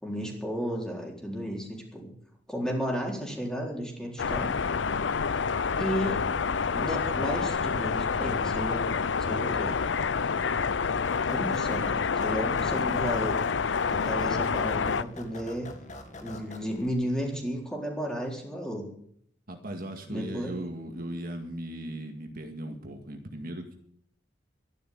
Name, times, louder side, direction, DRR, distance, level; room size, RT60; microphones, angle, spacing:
voice 1, 0.0-2.1 2.5-4.5 5.3-5.5 5.8-6.3 6.7-9.8 11.3-13.4 13.9-15.7 16.2-18.9 20.1-20.6, equal, 5° left, 0 dB, 4.1 m, -33 dB
sound 1, 4.2-15.0, left 5 dB, 85° left, 0.6 m, -28 dB
sound 2, 11.0-16.9, left 2 dB, 45° left, 2.2 m, -44 dB
voice 2, 19.5-23.8, right 1 dB, 55° right, 4 dB, 2.1 m, -38 dB
12.5 x 11.5 x 8.8 m, 0.68 s
head